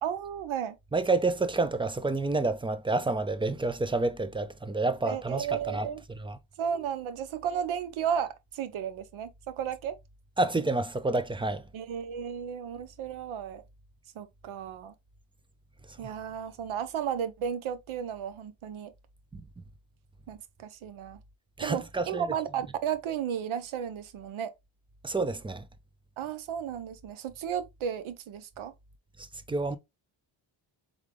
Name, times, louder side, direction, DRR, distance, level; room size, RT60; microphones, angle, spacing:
voice 1, 0.0-0.8 5.0-6.0 6.6-9.9 11.7-13.6 14.1-14.9 16.0-18.9 20.3-21.2 21.6-24.5 26.2-28.7, right 8 dB, 85° right, 0.8 m, -34 dB
voice 2, 0.9-6.4 10.4-11.6 16.0-16.1 19.3-19.5 21.6-22.3 25.0-25.7 29.5-29.8, right 3 dB, 10° right, 0.3 m, -29 dB
3.7 x 3.6 x 3.2 m
cardioid pair, 110°, 47 cm